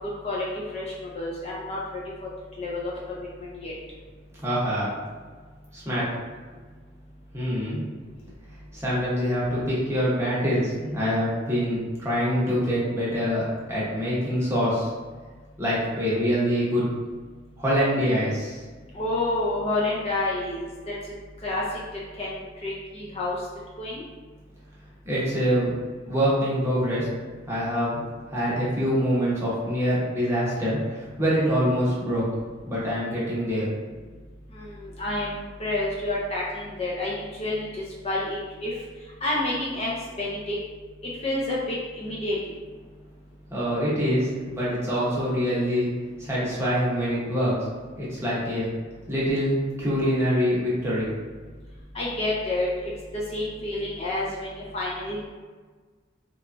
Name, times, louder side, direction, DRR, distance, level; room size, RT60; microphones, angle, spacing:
voice 1, 0.7-2.0 2.6-3.7 18.9-21.0 21.4-21.6 22.2-22.4 22.6-23.4 23.8-24.0 34.5-38.7 39.2-39.9 40.2-40.6 41.2-42.4 51.9-55.3, left 2 dB, 35° left, -5 dB, 0.4 m, -29 dB
voice 2, 4.4-4.9 5.7-6.1 7.3-7.8 8.7-14.9 15.6-16.8 17.6-18.6 25.0-25.7 26.1-27.1 27.5-28.0 28.3-32.2 32.7-33.7 43.5-45.9 46.2-47.7 48.0-48.7 49.1-51.1, equal, 15° right, -8 dB, 0.8 m, -25 dB
3.0 x 2.3 x 2.5 m, 1.4 s
head